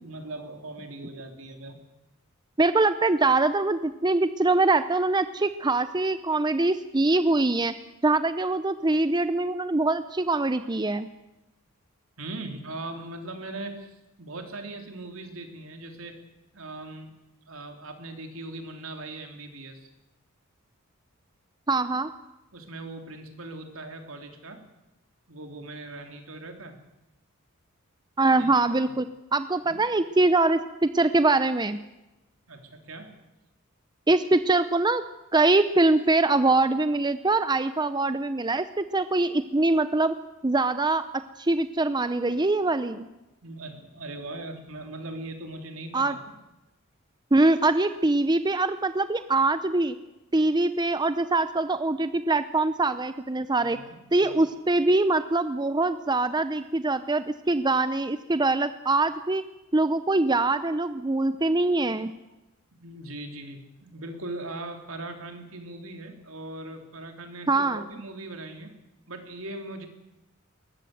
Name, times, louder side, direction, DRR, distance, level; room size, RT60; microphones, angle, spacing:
voice 1, 0.0-1.8 12.2-17.1 17.5-19.9 22.5-24.7 25.3-26.8 28.3-28.9 29.6-29.8 32.5-33.2 43.4-46.3 53.6-54.4 62.8-68.8 69.1-69.9, right 2 dB, 70° right, 5 dB, 3.7 m, -40 dB
voice 2, 2.6-7.7 8.0-11.1 21.7-22.1 28.2-31.8 34.1-35.0 35.3-40.1 40.4-43.1 45.9-46.2 47.3-50.0 50.3-53.8 54.1-59.4 59.7-62.1 67.5-67.8, right 2 dB, 20° right, 12 dB, 0.7 m, -23 dB
22.0 x 19.5 x 8.1 m, 0.98 s
head